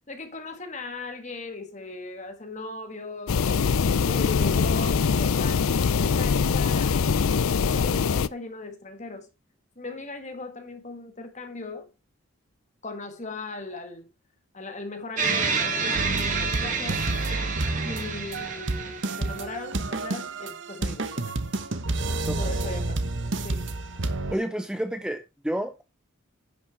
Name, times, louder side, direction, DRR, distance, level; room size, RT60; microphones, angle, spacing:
voice 1, 0.1-3.6 4.1-7.2 7.6-9.3 9.8-11.9 12.8-14.1 14.5-17.1 17.8-21.3 22.4-23.1 23.4-23.7, left 3 dB, 35° left, 1.8 m, -38 dB
sound 1, 3.3-8.3, left 5 dB, 80° left, 0.5 m, -23 dB
sound 2, 15.2-19.6, right 5 dB, 35° right, 2.0 m, -28 dB
sound 3, 15.9-24.4, right 2 dB, 60° right, 1.1 m, -30 dB
voice 2, 24.3-25.8, right 1 dB, 5° right, 0.5 m, -30 dB
10.5 x 6.2 x 4.7 m
head